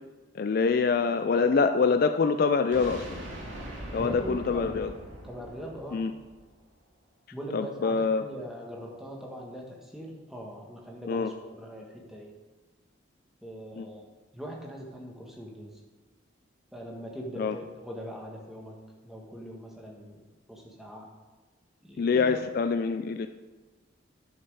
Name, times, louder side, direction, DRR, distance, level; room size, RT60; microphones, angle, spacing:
voice 1, 0.3-3.1 3.9-4.9 5.9-6.1 7.5-8.2 11.1-11.3 13.8-13.9 17.4-17.6 22.0-23.3, left 5 dB, 50° left, 8 dB, 0.3 m, -25 dB
sound 1, 2.7-6.7, right 1 dB, 75° right, 2.1 m, -41 dB
voice 2, 4.0-4.8 5.2-6.1 7.3-12.3 13.4-14.0 14.3-15.8 16.7-21.1 21.8-22.5, equal, ahead, -2 dB, 1.4 m, -41 dB
11.0 x 6.0 x 4.8 m, 1.3 s
head